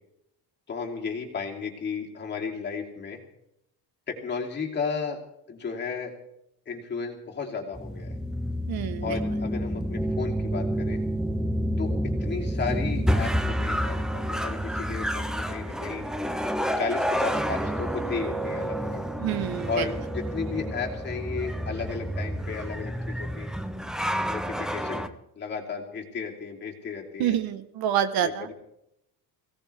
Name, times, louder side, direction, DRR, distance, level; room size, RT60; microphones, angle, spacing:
voice 1, 0.7-3.2 4.1-5.2 5.5-6.1 6.7-8.1 9.0-11.0 11.8-16.1 16.8-19.0 19.7-23.5 24.2-25.1 25.4-27.4 28.2-28.5, left 5 dB, 25° left, 0 dB, 2.8 m, -34 dB
sound 1, 7.7-25.1, equal, ahead, 0.5 m, -29 dB
voice 2, 8.7-9.2 19.2-19.9 27.2-28.5, right 10 dB, 70° right, 11 dB, 1.2 m, -27 dB
22.5 x 17.0 x 3.4 m, 0.79 s
cardioid pair, 170°, 39 cm